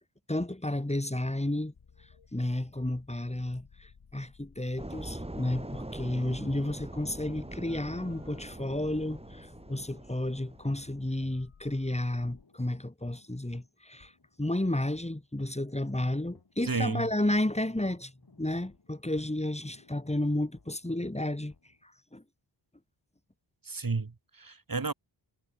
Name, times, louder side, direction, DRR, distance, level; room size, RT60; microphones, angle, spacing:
voice 1, 0.3-1.7 2.3-14.1 14.4-18.1 18.4-21.5 21.8-22.2, left 1 dB, 15° left, 2.8 m, -32 dB
sound 1, 1.7-12.4, left 6 dB, 75° left, 4.5 m, -58 dB
sound 2, 4.8-11.1, right 1 dB, 10° right, 3.0 m, -43 dB
sound 3, 9.2-21.9, left 4 dB, 45° left, 7.2 m, -62 dB
voice 2, 16.6-17.1 23.6-24.9, right 4 dB, 40° right, 3.1 m, -32 dB
wide cardioid pair, 80°, 50 cm